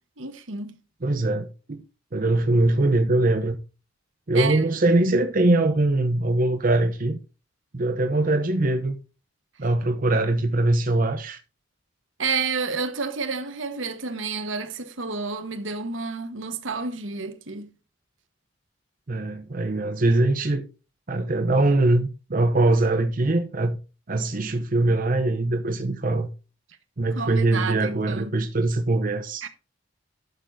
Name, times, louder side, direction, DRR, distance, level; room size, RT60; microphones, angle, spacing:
voice 1, 0.2-0.8 4.3-4.6 12.2-17.7 27.2-28.3 29.4-29.5, right 4 dB, 85° right, 1.3 m, -30 dB
voice 2, 1.0-1.8 2.1-3.6 4.3-7.2 7.7-9.0 9.6-11.4 19.1-20.7 21.1-23.8 24.1-26.3 27.0-29.5, right 2 dB, 45° right, 0.8 m, -22 dB
11.5 x 6.8 x 2.7 m
head